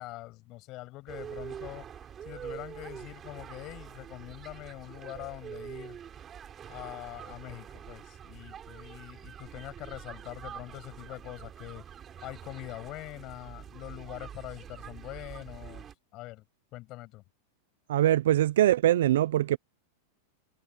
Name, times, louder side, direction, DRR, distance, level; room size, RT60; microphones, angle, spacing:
voice 1, 0.0-1.9 2.2-6.0 6.7-11.8 12.2-15.9 16.1-16.5 16.7-17.2, left 19 dB, 45° left, 7.0 m, -43 dB
sound 1, 1.1-15.9, right 8 dB, 25° right, 7.6 m, -45 dB
voice 2, 17.9-19.6, right 12 dB, 75° right, 0.5 m, -23 dB
hypercardioid pair, 125°, 0 cm